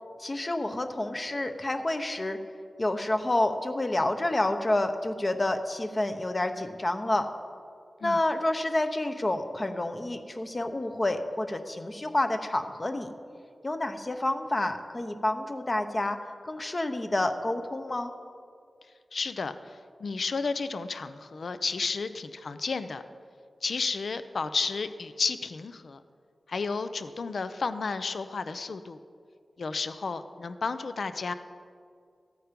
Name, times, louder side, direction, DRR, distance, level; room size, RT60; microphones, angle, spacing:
voice 1, 0.2-2.4 2.8-7.3 8.0-13.1 13.6-16.2 16.5-18.1, left 1 dB, 30° left, 7 dB, 0.8 m, -29 dB
voice 2, 19.1-23.0 23.6-26.0 26.5-29.0 29.6-31.3, left 4 dB, 75° left, 11 dB, 0.5 m, -32 dB
13.5 x 9.2 x 5.2 m, 2.2 s
wide cardioid pair, 85°, 0 cm